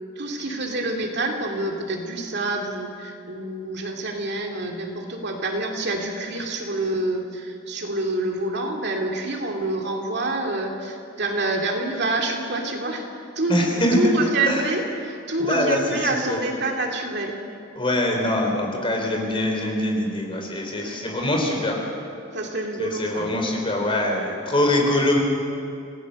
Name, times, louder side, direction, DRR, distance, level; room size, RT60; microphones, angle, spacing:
voice 1, 0.2-13.1 13.4-17.4 20.8-21.0 22.3-23.3, right 2 dB, 55° right, 1 dB, 2.5 m, -27 dB
voice 2, 13.5-14.0 14.5-14.6 15.5-15.8 16.3-16.4 17.8-21.8 22.8-25.2, left 1 dB, 25° left, 1 dB, 3.8 m, -23 dB
28.0 x 18.0 x 6.5 m, 2.6 s
head